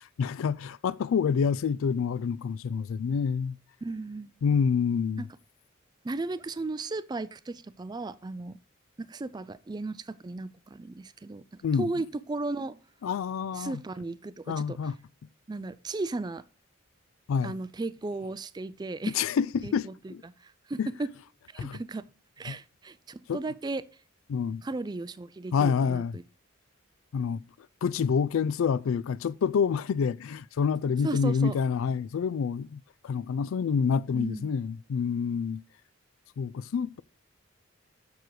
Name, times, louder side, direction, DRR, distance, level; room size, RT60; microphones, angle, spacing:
voice 1, 0.0-3.6 4.4-5.3 11.6-11.9 13.0-13.8 14.5-15.0 17.3-17.6 19.1-20.2 20.8-20.9 21.6-21.8 22.5-22.6 23.3-23.4 24.3-24.6 25.5-26.1 27.1-27.4 27.8-35.6 36.4-37.0, left 6 dB, 80° left, 0.3 m, -27 dB
voice 2, 3.8-4.3 5.2-5.3 6.0-8.6 9.0-12.8 13.5-14.8 15.5-16.4 17.4-19.2 19.6-21.1 21.5-22.1 22.4-23.8 24.6-26.2 31.0-31.6 34.1-34.5, right 3 dB, 20° right, 0.3 m, -35 dB
6.9 x 6.1 x 4.8 m
head